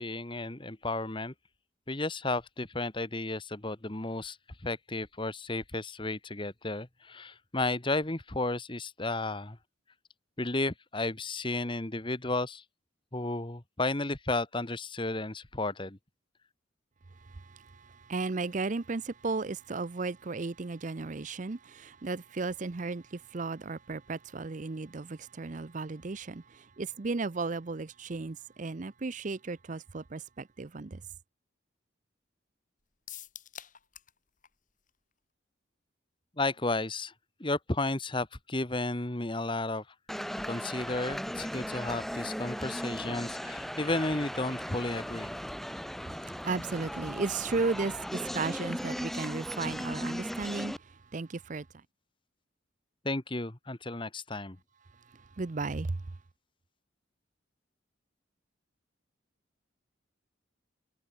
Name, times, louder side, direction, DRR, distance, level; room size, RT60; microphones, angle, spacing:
voice 1, 0.0-1.3 1.9-4.4 4.6-9.6 10.4-12.6 13.1-16.0 36.4-37.1 37.4-39.8 40.5-45.3 53.0-54.6, left 2 dB, 25° left, 1.5 m, -33 dB
voice 2, 17.1-31.0 46.0-51.7 55.1-56.2, right 3 dB, 40° right, 0.6 m, -35 dB
sound 1, 33.1-34.2 34.4-34.5 34.9-35.0, left 11 dB, 40° left, 4.7 m, -46 dB
sound 2, 40.1-50.8, equal, ahead, 1.2 m, -37 dB
head